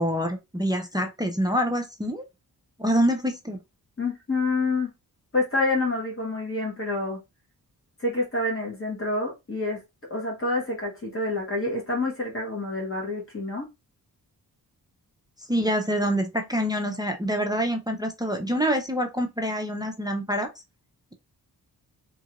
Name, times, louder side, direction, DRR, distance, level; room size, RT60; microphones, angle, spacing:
voice 1, 0.0-2.2 2.8-3.6 15.5-20.5, equal, 10° right, 0.4 m, -26 dB
voice 2, 4.0-4.9 5.3-7.2 8.0-9.8 10.1-13.7 15.6-15.7, left 2 dB, 35° left, 1.2 m, -27 dB
2.9 x 2.4 x 2.9 m
wide cardioid pair, 125°, 37 cm